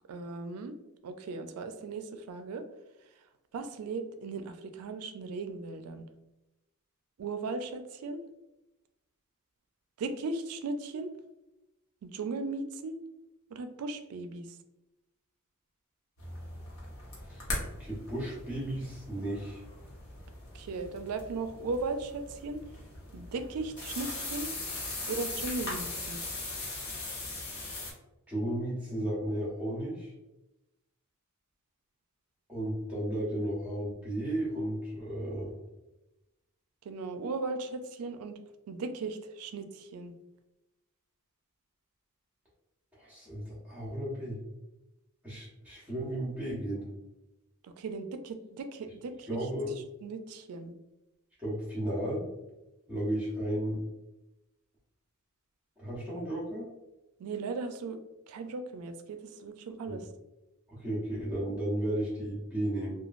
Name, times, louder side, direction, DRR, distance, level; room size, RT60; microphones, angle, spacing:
voice 1, 0.1-0.7 1.0-2.6 3.5-6.1 7.2-8.2 10.0-11.1 12.0-13.0 13.5-14.5 20.5-22.6 23.1-24.5 25.1-26.2 36.9-38.3 38.7-40.1 47.6-49.4 50.0-50.7 57.2-58.0 58.3-60.0, right 3 dB, 85° right, 8 dB, 0.3 m, -37 dB
sound 1, 16.2-27.9, left 2 dB, 65° left, 0.9 m, -40 dB
voice 2, 17.8-19.6 28.3-30.1 32.5-35.5 42.9-44.4 45.2-46.8 49.3-49.8 51.4-52.3 52.9-53.8 55.8-56.6 59.8-60.0 60.8-62.9, right 1 dB, 5° right, -8 dB, 0.7 m, -34 dB
3.0 x 2.3 x 2.4 m, 0.96 s
head